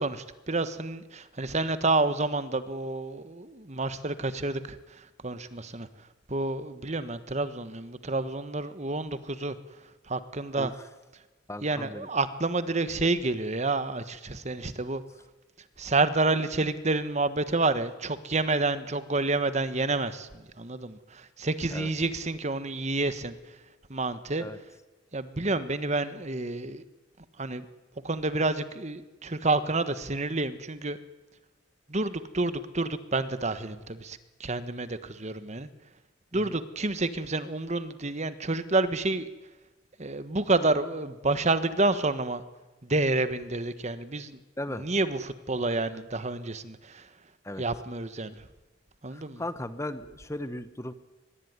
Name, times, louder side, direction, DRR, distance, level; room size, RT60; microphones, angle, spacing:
voice 1, 0.0-4.8 5.2-5.9 6.3-9.5 10.1-10.7 11.6-15.0 15.8-23.4 23.9-24.4 25.1-26.8 27.4-27.6 28.0-31.0 31.9-35.7 36.3-39.3 40.0-42.4 42.8-44.4 44.7-47.1 47.6-48.4 49.0-49.4, right 2 dB, 35° right, 12 dB, 1.3 m, -29 dB
voice 2, 11.5-12.1 21.7-21.9 24.4-24.6 36.3-36.6 44.6-44.8 47.4-47.6 49.1-50.9, left 1 dB, 15° left, 12 dB, 1.2 m, -37 dB
24.0 x 21.5 x 9.7 m, 1.2 s
head